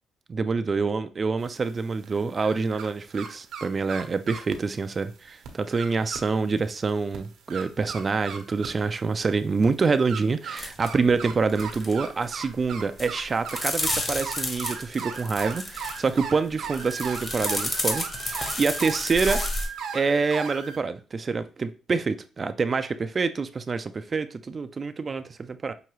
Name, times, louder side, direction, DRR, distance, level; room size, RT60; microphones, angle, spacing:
voice 1, 0.3-19.4 19.9-25.7, right 4 dB, 35° right, 0.3 m, -26 dB
sound 1, 1.4-2.9 3.1-4.5 5.1-5.2 5.4-6.2 6.6-6.7 7.1-8.8 9.5-20.8, right 6 dB, 85° right, 0.8 m, -37 dB
sound 2, 10.6-10.9 11.1-11.9 12.2-12.6 13.0-16.2 16.6-19.7, left 2 dB, 30° left, 1.3 m, -31 dB
5.9 x 2.7 x 3.0 m
cardioid pair, 90°, 0 cm